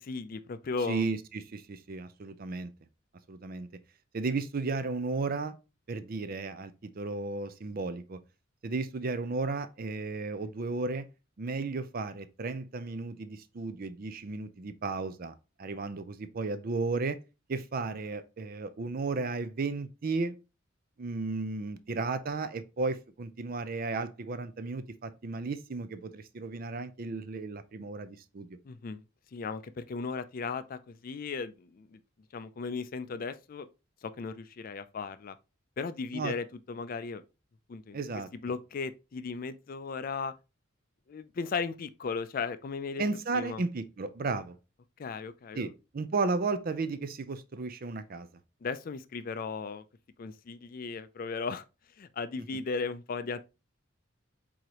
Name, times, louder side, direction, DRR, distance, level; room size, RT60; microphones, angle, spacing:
voice 1, 0.0-1.2 28.6-29.0 29.3-32.0 32.3-33.7 34.0-35.4 35.8-37.2 37.7-38.0 38.4-40.3 41.1-43.0 43.3-43.6 45.0-45.7 48.6-49.8 50.2-51.6 52.0-53.4, left 4 dB, 45° left, 0.4 m, -36 dB
voice 2, 0.9-2.7 3.3-3.7 4.1-5.5 5.9-8.2 8.6-11.1 11.4-17.2 17.5-20.3 21.0-28.5 36.1-36.3 37.9-38.5 43.0-44.5 45.5-48.3, right 3 dB, 45° right, 0.5 m, -34 dB
4.7 x 3.9 x 2.9 m
head